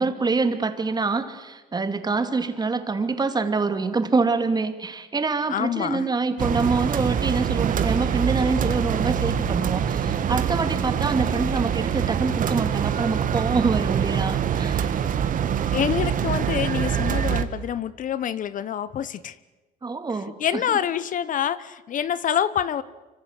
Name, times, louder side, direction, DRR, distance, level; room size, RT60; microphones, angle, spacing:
voice 1, 0.0-15.0 19.8-20.4, right 4 dB, 25° right, 9 dB, 2.6 m, -25 dB
voice 2, 5.5-6.1 15.7-19.4 20.1-22.8, left 9 dB, 50° left, 17 dB, 0.9 m, -26 dB
sound 1, 6.4-17.4, right 8 dB, 50° right, 1.7 m, -24 dB
25.5 x 25.0 x 8.1 m, 1.2 s
cardioid pair, 110°, 17 cm